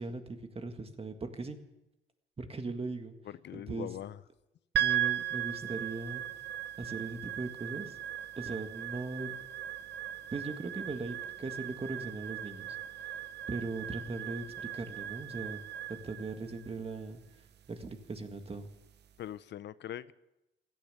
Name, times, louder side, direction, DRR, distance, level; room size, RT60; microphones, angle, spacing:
voice 1, 0.0-1.6 2.4-3.2 3.5-3.9 4.8-6.2 6.8-8.0 8.4-9.4 10.3-12.8 13.5-15.6 15.9-17.2 17.7-18.7, right 3 dB, 30° right, 1.8 m, -39 dB
voice 2, 3.3-4.2 19.2-20.1, left 11 dB, 60° left, 0.6 m, -42 dB
sound 1, 4.7-19.1, right 11 dB, 60° right, 0.8 m, -38 dB
16.5 x 12.0 x 6.8 m
cardioid pair, 90°, 20 cm